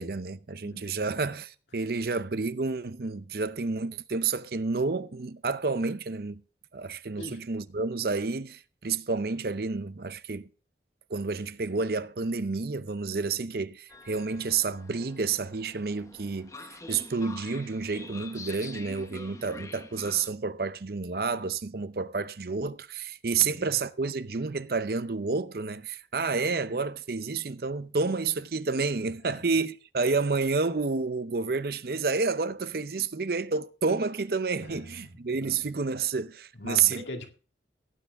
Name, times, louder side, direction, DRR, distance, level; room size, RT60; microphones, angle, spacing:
voice 1, 0.0-6.4 6.7-10.5 11.1-16.5 16.9-37.0, right 4 dB, 55° right, 0.7 m, -30 dB
voice 2, 0.6-1.1 7.2-7.4 23.3-23.8 26.7-26.8 29.2-29.5 34.6-35.7 36.5-37.3, left 1 dB, 80° left, 2.2 m, -42 dB
Train, 13.9-20.3, left 3 dB, 15° left, 0.9 m, -46 dB
16.0 x 9.5 x 3.6 m
head